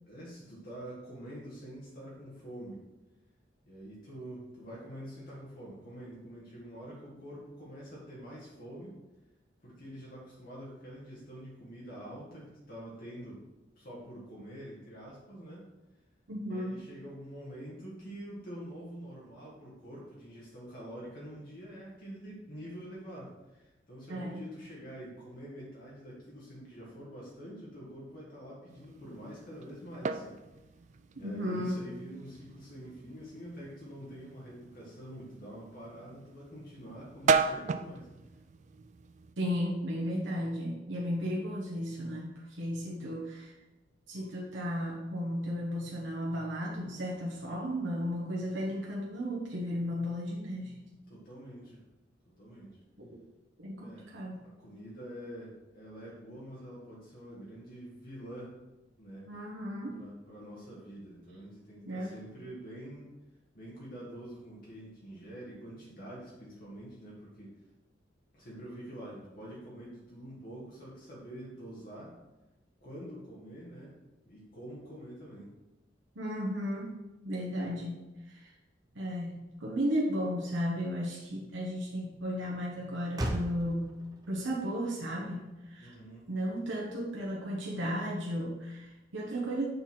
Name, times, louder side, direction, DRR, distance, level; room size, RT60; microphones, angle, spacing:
voice 1, 0.1-2.8 3.6-9.0 9.6-13.4 13.7-15.7 16.5-30.4 31.1-38.1 51.1-51.8 52.4-52.8 53.8-54.1 54.4-58.5 59.0-59.3 59.9-63.1 63.5-67.5 68.3-72.2 72.8-74.0 74.2-75.5 85.8-86.3, equal, 50° left, -5 dB, 1.5 m, -46 dB
voice 2, 16.3-16.8 24.1-24.4 31.2-31.8 39.4-43.5 44.1-50.8 53.0-53.1 53.6-54.4 59.3-60.0 61.9-62.2 76.1-77.0 77.2-78.5 78.9-84.0 84.3-85.9 86.3-89.7, equal, 85° right, -4 dB, 1.0 m, -34 dB
sound 1, 28.7-39.4, right 5 dB, 40° right, 0.3 m, -36 dB
Motor vehicle (road), 79.6-87.7, equal, 20° right, 0.7 m, -43 dB
6.8 x 4.0 x 4.3 m, 1.0 s
head